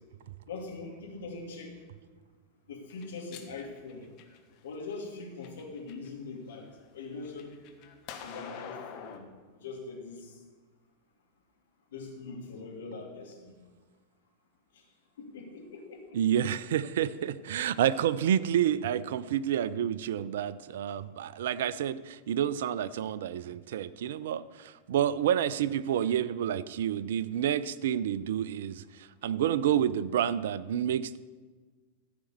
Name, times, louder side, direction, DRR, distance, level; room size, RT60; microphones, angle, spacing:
voice 1, 0.5-1.7 2.7-4.0 4.6-7.6 8.2-9.3 9.6-10.4 11.9-13.5 14.7-14.8 15.2-16.2, left 3 dB, 60° left, -1 dB, 2.8 m, -42 dB
sound 1, 2.9-4.6 5.2-6.1 6.5-9.2, left 8 dB, 40° left, 1.2 m, -46 dB
voice 2, 16.1-31.2, right 10 dB, 60° right, 17 dB, 0.4 m, -29 dB
14.5 x 5.1 x 6.9 m, 1.4 s
figure-of-eight pair, 90°, 0 cm